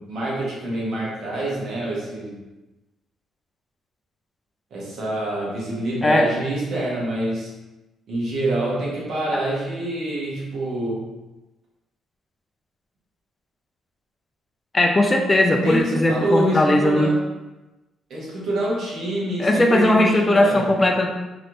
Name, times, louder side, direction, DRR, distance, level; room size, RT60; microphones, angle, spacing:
voice 1, 0.0-2.4 4.7-7.5 8.1-11.1 15.5-17.2 18.1-20.7, right 1 dB, 70° right, -5 dB, 1.2 m, -26 dB
voice 2, 14.7-17.1 19.4-21.1, left 1 dB, 25° left, 2 dB, 0.5 m, -18 dB
3.1 x 3.1 x 2.6 m, 1.1 s
cardioid pair, 90°, 0 cm